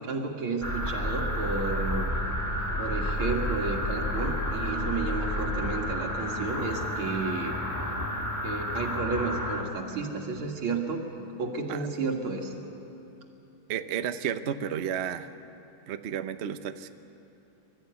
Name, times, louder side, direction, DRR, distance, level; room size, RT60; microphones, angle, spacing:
voice 1, 0.0-2.1 2.8-7.6 8.4-11.0 11.4-12.5, right 4 dB, 90° right, 2 dB, 2.8 m, -32 dB
sound 1, 0.6-9.6, left 1 dB, 10° left, 1.4 m, -30 dB
voice 2, 13.7-15.3 15.9-16.9, right 8 dB, 70° right, 10 dB, 0.6 m, -32 dB
25.5 x 13.5 x 9.4 m, 2.9 s
omnidirectional pair, 2.2 m